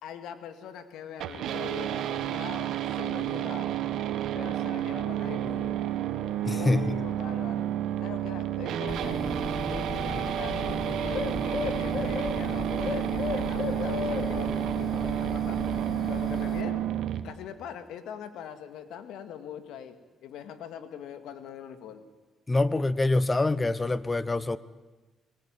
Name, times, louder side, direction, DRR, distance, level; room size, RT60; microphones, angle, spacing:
voice 1, 0.0-3.9 4.3-5.8 6.4-7.7 8.0-9.4 9.7-15.8 16.1-16.9 17.2-22.1, left 8 dB, 85° left, 9 dB, 2.1 m, -42 dB
sound 1, 1.2-17.2, right 11 dB, 80° right, 1.6 m, -30 dB
voice 2, 6.4-6.9 22.5-24.6, left 2 dB, 20° left, 17 dB, 1.1 m, -25 dB
Bird, 8.9-16.6, left 6 dB, 55° left, 2.0 m, -35 dB
24.5 x 21.5 x 9.1 m, 1.2 s
cardioid pair, 90°, 0 cm